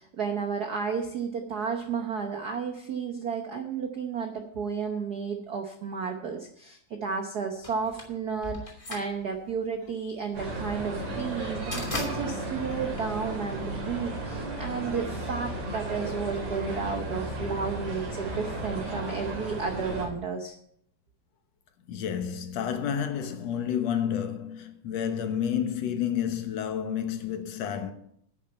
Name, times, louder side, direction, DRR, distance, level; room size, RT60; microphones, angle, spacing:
voice 1, 0.0-20.5, right 5 dB, 85° right, 0.8 m, -32 dB
sound 1, 7.6-13.8, left 2 dB, 10° left, 2.6 m, -39 dB
sound 2, 10.3-20.1, right 1 dB, 65° right, 4.8 m, -34 dB
voice 2, 21.9-27.9, left 9 dB, 65° left, 2.2 m, -30 dB
10.5 x 6.4 x 9.1 m
omnidirectional pair, 3.3 m